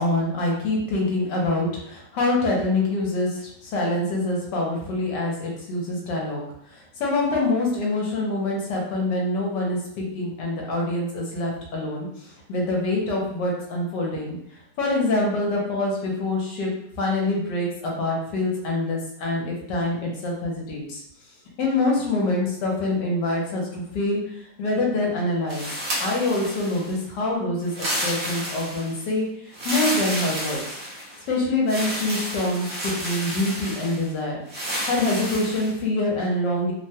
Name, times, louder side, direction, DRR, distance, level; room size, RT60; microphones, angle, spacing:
voice 1, 0.0-6.4 6.7-14.3 14.8-16.7 17.0-21.0 21.6-25.7 26.0-30.8 31.3-34.4 34.9-36.7, left 2 dB, 75° left, -2 dB, 1.4 m, -25 dB
sound 1, 25.5-27.0 27.7-29.0 29.5-31.2 31.7-34.1 34.5-35.7, equal, 50° right, 1.1 m, -30 dB
3.4 x 2.2 x 2.7 m, 0.71 s
omnidirectional pair, 2.0 m